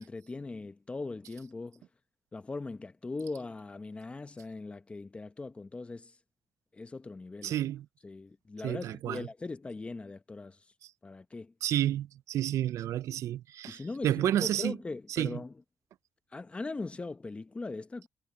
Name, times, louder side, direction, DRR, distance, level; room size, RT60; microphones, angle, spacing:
voice 1, 0.0-1.8 2.3-6.2 6.7-7.6 8.0-10.7 11.0-11.5 13.7-15.5 16.3-18.1, left 3 dB, 25° left, 0.9 m, -40 dB
voice 2, 7.4-7.9 8.6-9.3 11.6-14.8 15.2-15.4, right 12 dB, 80° right, 0.4 m, -30 dB
cardioid pair, 110°, 5 cm